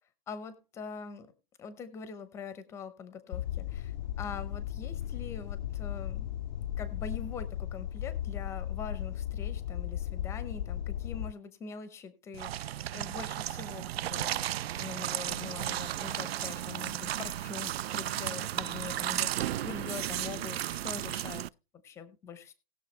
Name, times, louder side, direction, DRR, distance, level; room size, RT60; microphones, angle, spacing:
voice 1, 0.3-1.3 1.6-6.3 6.8-21.5 21.8-22.5, left 6 dB, 10° left, 12 dB, 0.7 m, -43 dB
sound 1, 3.3-11.3, left 11 dB, 50° left, 0.4 m, -36 dB
sound 2, 12.3-21.5, right 12 dB, 75° right, 0.5 m, -34 dB
19.0 x 6.6 x 3.2 m, 0.32 s
hypercardioid pair, 160°, 31 cm